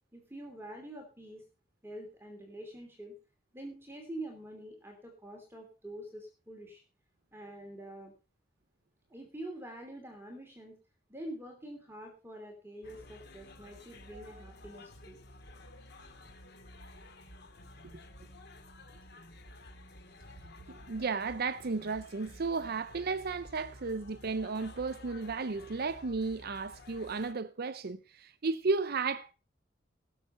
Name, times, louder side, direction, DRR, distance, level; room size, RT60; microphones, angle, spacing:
voice 1, 0.1-1.4 1.8-3.2 3.5-6.8 7.3-8.1 9.1-10.8 11.1-15.2, right 1 dB, 15° right, 2.9 m, -46 dB
sound 1, 12.8-27.3, left 1 dB, 60° left, 2.5 m, -52 dB
voice 2, 20.7-29.3, right 4 dB, 55° right, 0.6 m, -34 dB
18.5 x 7.2 x 5.7 m
head